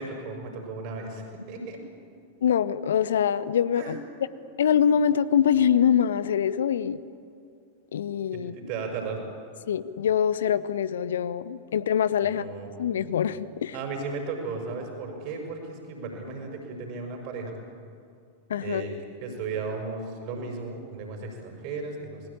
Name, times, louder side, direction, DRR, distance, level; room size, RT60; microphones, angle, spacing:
voice 1, 0.0-1.8 3.7-4.0 8.3-9.2 12.2-12.7 13.7-17.6 18.6-18.9 19.2-22.2, right 4 dB, 45° right, 3 dB, 6.0 m, -35 dB
voice 2, 2.4-4.0 4.6-7.0 7.9-8.5 9.7-12.4 12.8-13.8 18.5-18.8, left 8 dB, 65° left, 16 dB, 0.7 m, -24 dB
28.0 x 20.5 x 8.7 m, 2.4 s
figure-of-eight pair, 90°, 0 cm